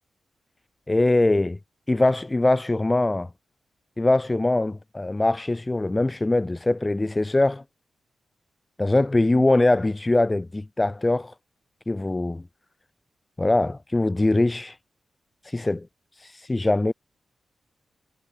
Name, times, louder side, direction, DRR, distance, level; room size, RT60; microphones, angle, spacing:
voice 1, 0.9-1.6 1.9-3.3 4.0-7.6 8.8-11.3 11.9-12.4 13.4-14.8 15.4-15.9 16.2-16.9, left 2 dB, 20° left, 0.7 m, -22 dB
cardioid pair, 70°, 0 cm